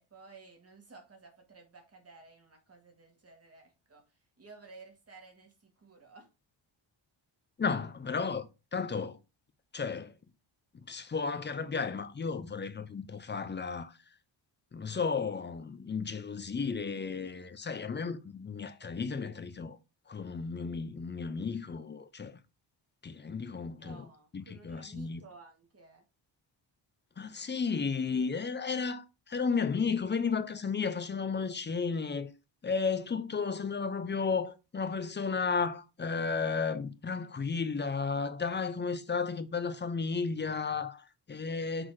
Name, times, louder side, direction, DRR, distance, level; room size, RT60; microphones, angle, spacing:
voice 1, 0.0-6.3 23.6-26.1, right 3 dB, 30° right, 1.9 m, -55 dB
voice 2, 7.6-9.2 9.7-10.2 10.7-14.0 14.7-19.8 20.1-22.4 23.0-24.0 24.3-25.2 27.2-32.3 32.6-41.9, left 5 dB, 25° left, 0.5 m, -33 dB
6.2 x 4.0 x 4.7 m
wide cardioid pair, 160°, 48 cm